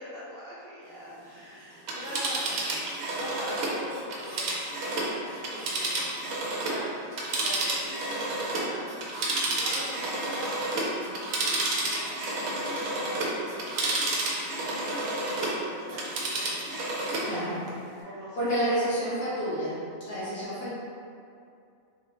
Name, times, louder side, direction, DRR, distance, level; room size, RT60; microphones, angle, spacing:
voice 1, 0.0-4.6 4.9-6.1 6.4-9.1 9.4-17.7 18.0-18.9 20.3-20.5, equal, 60° right, -9 dB, 0.6 m, -43 dB
Telephone, 1.7-6.8 7.1-15.6 15.9-17.3 17.7-17.8, right 2 dB, 90° right, 1.1 m, -30 dB
voice 2, 17.2-17.6 18.4-19.8 20.0-20.7, equal, 60° left, -14 dB, 1.6 m, -29 dB
3.7 x 2.0 x 3.1 m, 2.4 s
omnidirectional pair, 1.4 m